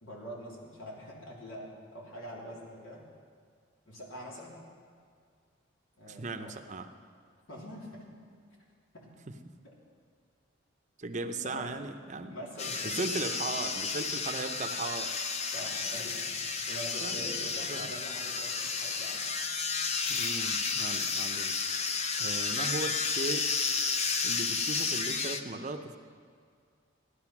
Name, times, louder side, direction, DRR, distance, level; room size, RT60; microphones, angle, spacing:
voice 1, 0.0-3.0 3.9-4.6 6.0-6.5 7.5-8.1 8.9-9.1 9.6-9.7 11.4-11.8 12.3-13.0 15.5-16.4 16.7-19.2, equal, 75° left, -3 dB, 3.4 m, -44 dB
voice 2, 6.1-6.9 11.0-12.4 12.8-15.1 17.0-17.3 17.6-17.9 20.1-21.6 22.2-23.5 24.2-26.0, right 3 dB, 35° right, 7 dB, 0.7 m, -37 dB
sound 1, 12.6-25.4, left 5 dB, 30° left, 0.6 m, -32 dB
16.0 x 11.5 x 6.0 m, 2.1 s
head